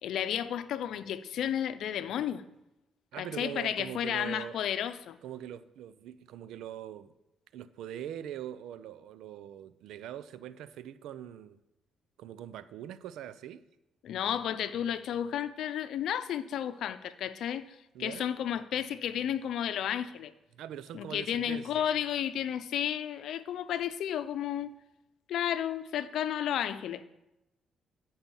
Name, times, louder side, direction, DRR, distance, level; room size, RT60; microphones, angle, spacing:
voice 1, 0.0-2.4 3.2-5.2 14.0-17.7 18.0-20.3 20.9-24.7 25.3-27.0, left 10 dB, 75° left, 0.7 m, -32 dB
voice 2, 3.1-4.6 5.2-7.1 7.5-11.6 12.2-13.6 17.9-18.3 20.6-21.9, right 10 dB, 85° right, 0.6 m, -42 dB
13.0 x 5.7 x 7.2 m
cardioid pair, 90°, 0 cm